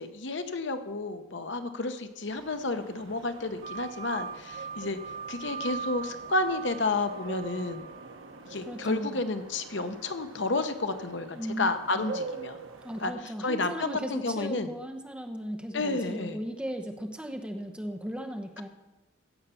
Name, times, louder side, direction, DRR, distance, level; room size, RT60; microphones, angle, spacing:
voice 1, 0.0-5.0 5.3-7.8 8.5-12.6 13.0-14.7 15.7-16.4, left 2 dB, 60° left, 8 dB, 0.9 m, -31 dB
sound 1, 2.3-13.1, right 3 dB, 80° right, 1.0 m, -45 dB
sound 2, 3.6-8.4, right 6 dB, 30° right, 0.3 m, -40 dB
voice 2, 8.6-9.2 11.3-12.1 12.8-18.7, equal, 5° right, 3 dB, 0.9 m, -37 dB
16.0 x 5.6 x 7.0 m, 1.1 s
head